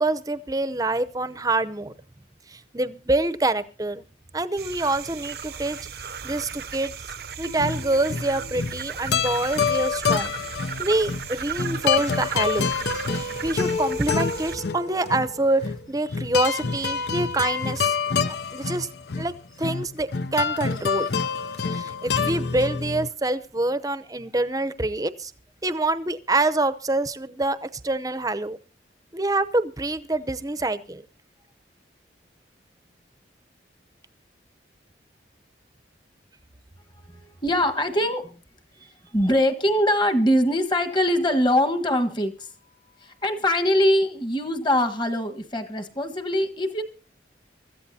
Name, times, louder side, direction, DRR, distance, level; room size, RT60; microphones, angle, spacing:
voice 1, 0.0-1.9 2.5-4.0 4.3-6.9 7.4-10.3 10.8-12.7 13.1-18.0 18.3-18.9 19.1-19.3 19.6-21.1 21.6-25.3 25.6-28.6 29.1-31.0, right 2 dB, 20° right, 12 dB, 0.7 m, -26 dB
sound 1, 4.6-14.6, right 6 dB, 55° right, 0.7 m, -36 dB
sound 2, 7.5-23.1, left 5 dB, 60° left, 0.6 m, -27 dB
voice 2, 37.1-38.4 39.1-42.5 43.0-46.8, left 1 dB, 25° left, 6 dB, 1.4 m, -23 dB
24.5 x 14.0 x 2.8 m, 0.36 s
head